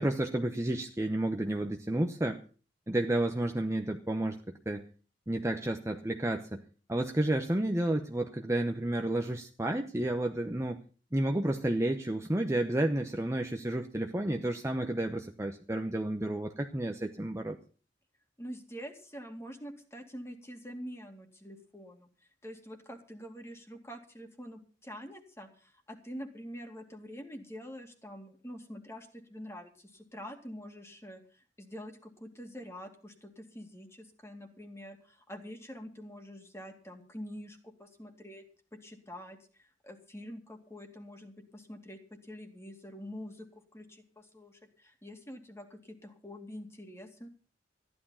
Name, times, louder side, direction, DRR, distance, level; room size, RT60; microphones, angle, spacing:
voice 1, 0.0-2.4 2.9-4.8 5.3-6.6 6.9-10.8 11.1-17.6, right 1 dB, 15° right, 5 dB, 0.9 m, -31 dB
voice 2, 18.4-38.5 38.7-43.5 43.7-47.3, equal, 15° left, 4 dB, 2.3 m, -46 dB
14.5 x 11.5 x 5.6 m, 0.38 s
head